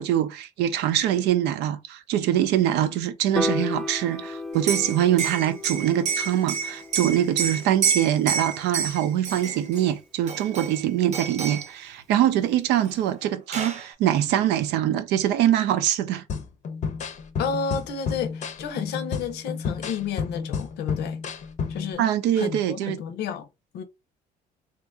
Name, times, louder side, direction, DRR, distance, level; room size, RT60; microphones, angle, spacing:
voice 1, 0.0-16.2 22.0-23.0, right 11 dB, 85° right, 0.6 m, -23 dB
Piano, 3.4-9.7, left 2 dB, ahead, 0.4 m, -35 dB
Liquid, 4.5-9.8 10.3-10.8 11.1-11.7 12.9-13.0 13.2-13.9, right 6 dB, 45° right, 0.7 m, -29 dB
sound 1, 16.3-21.9, left 6 dB, 45° left, 0.6 m, -31 dB
voice 2, 17.4-21.2 21.7-22.1 22.4-23.5 23.7-23.8, left 7 dB, 80° left, 0.7 m, -31 dB
2.9 x 2.5 x 3.5 m
cardioid pair, 110°, 17 cm